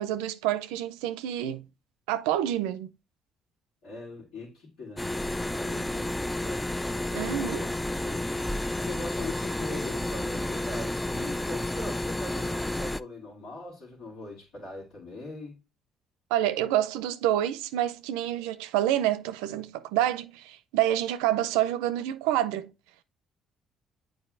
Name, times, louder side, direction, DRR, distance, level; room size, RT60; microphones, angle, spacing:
voice 1, 0.0-1.6 2.1-2.9 7.1-7.7 16.3-22.7, right 12 dB, 85° right, 0.4 m, -28 dB
voice 2, 3.8-7.7 8.0-8.4 8.7-15.6, left 2 dB, 75° left, 3.2 m, -41 dB
sound 1, 5.0-13.0, left 1 dB, 10° left, 0.3 m, -31 dB
8.3 x 4.5 x 2.5 m
supercardioid pair, 60°, 0 cm